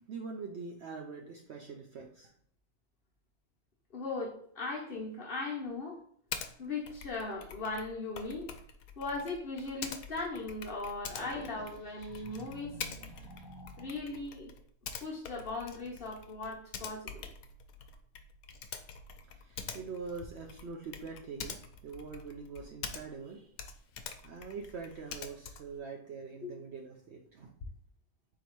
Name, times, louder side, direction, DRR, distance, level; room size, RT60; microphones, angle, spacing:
voice 1, 0.0-2.3 19.3-23.5 24.2-27.5, right 5 dB, 65° right, 2 dB, 0.7 m, -44 dB
voice 2, 3.9-6.0 6.6-8.5 9.0-12.7 13.8-14.5 15.0-17.2 26.4-26.5, left 3 dB, 45° left, -2 dB, 0.9 m, -38 dB
Typing, 6.3-6.5 6.9-23.3 23.5-25.8, left 6 dB, 80° left, 1.0 m, -45 dB
sound 1, 11.1-14.2, left 1 dB, 20° left, 1.0 m, -49 dB
4.1 x 2.8 x 4.5 m, 0.63 s
omnidirectional pair, 1.5 m